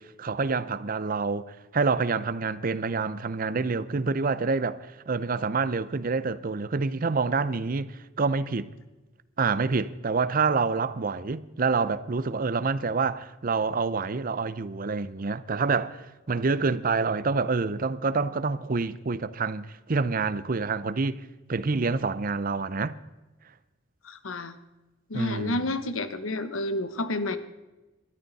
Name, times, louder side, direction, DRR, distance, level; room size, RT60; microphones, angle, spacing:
voice 1, 0.0-8.7 9.4-21.2 21.5-22.9 25.1-25.7, right 4 dB, 45° right, 0.6 m, -27 dB
voice 2, 24.0-24.5 25.1-27.4, left 2 dB, 85° left, 1.2 m, -30 dB
20.5 x 13.0 x 4.1 m
head